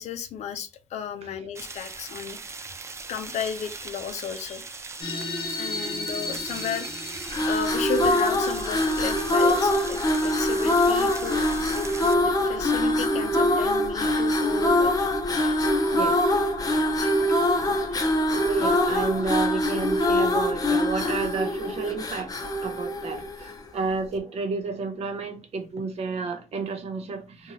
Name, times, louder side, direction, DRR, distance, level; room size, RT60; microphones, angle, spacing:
voice 1, 0.0-2.4 3.1-4.8 5.6-6.9 7.4-11.4 12.0-14.9 15.3-15.6 17.0-17.4 17.8-18.0, left 7 dB, 85° left, 0.4 m, -34 dB
sound 1, 1.5-12.1, right 4 dB, 25° right, 0.3 m, -39 dB
sound 2, 5.0-9.9, left 2 dB, 55° left, 1.0 m, -35 dB
sound 3, 7.2-23.7, left 1 dB, 35° left, 0.6 m, -24 dB
voice 2, 18.3-27.5, right 4 dB, 70° right, 0.7 m, -31 dB
3.0 x 2.2 x 2.7 m
cardioid pair, 90°, 11 cm